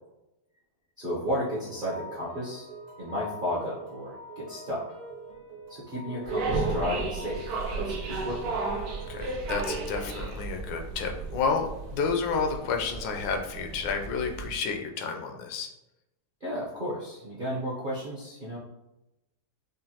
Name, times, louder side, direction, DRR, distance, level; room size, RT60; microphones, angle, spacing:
voice 1, 1.0-2.7 3.0-4.8 5.7-7.4 7.8-8.6 16.4-18.6, equal, 50° right, -8 dB, 0.6 m, -33 dB
sound 1, 1.3-9.4, right 1 dB, 90° right, 1.7 m, -45 dB
sound 2, 6.2-14.5, right 3 dB, 65° right, 1.1 m, -34 dB
voice 2, 9.1-11.7 11.9-15.7, left 5 dB, 80° left, 3 dB, 1.3 m, -30 dB
5.0 x 2.2 x 2.8 m, 0.93 s
omnidirectional pair, 2.0 m